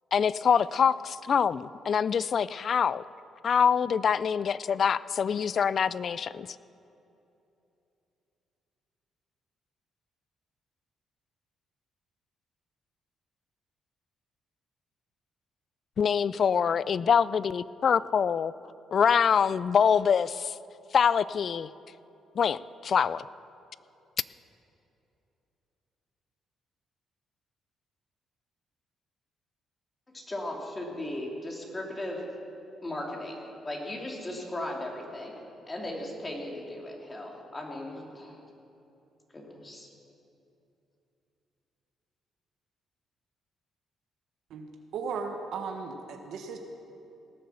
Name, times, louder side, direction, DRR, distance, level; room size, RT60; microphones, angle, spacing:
voice 1, 0.1-3.0 3.4-6.5 16.0-18.5 18.9-20.6 20.9-21.7 22.4-23.3, left 7 dB, 50° left, 18 dB, 0.3 m, -25 dB
voice 2, 30.1-32.2 32.8-35.4 35.7-38.4 39.3-39.9, left 1 dB, 25° left, 0 dB, 2.6 m, -37 dB
voice 3, 44.9-46.6, right 5 dB, 75° right, 4 dB, 1.2 m, -36 dB
18.0 x 7.7 x 7.0 m, 2.8 s
cardioid pair, 90°, 0 cm